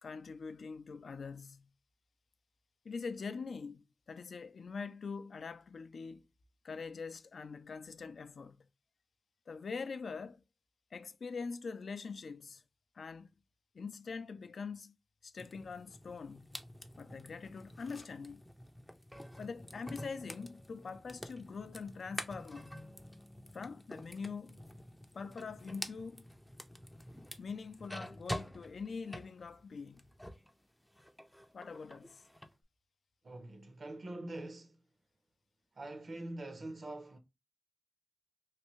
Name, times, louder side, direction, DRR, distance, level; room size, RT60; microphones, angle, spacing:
voice 1, 0.0-1.7 2.8-6.3 6.6-8.7 9.5-10.4 10.9-12.6 12.9-13.3 13.7-14.9 15.2-16.5 17.0-18.4 19.4-22.8 23.5-24.6 25.1-26.3 27.4-30.1 31.5-32.2, left 5 dB, 70° left, 0.3 m, -44 dB
sound 1, 15.4-30.5 30.9-32.5, equal, 5° left, 0.4 m, -48 dB
voice 2, 33.2-34.8 35.7-37.2, right 2 dB, 55° right, 0.7 m, -44 dB
3.2 x 2.6 x 3.0 m
wide cardioid pair, 115°, 0 cm